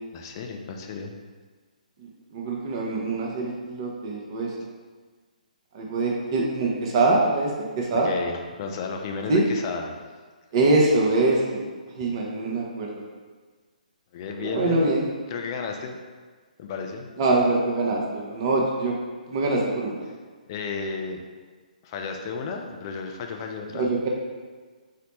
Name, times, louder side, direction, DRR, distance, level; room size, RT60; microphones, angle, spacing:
voice 1, 0.1-1.1 8.0-10.0 14.1-14.9 15.3-16.0 16.6-17.1 20.5-21.2 21.8-23.9, left 5 dB, 30° left, 3 dB, 0.3 m, -33 dB
voice 2, 2.0-4.5 5.7-7.5 7.8-8.1 9.3-9.4 10.5-11.7 12.0-12.9 14.4-15.0 17.2-18.9 19.3-20.0 23.7-24.1, right 2 dB, 35° right, -2 dB, 0.6 m, -23 dB
4.0 x 2.1 x 2.9 m, 1.4 s
figure-of-eight pair, 135°, 5 cm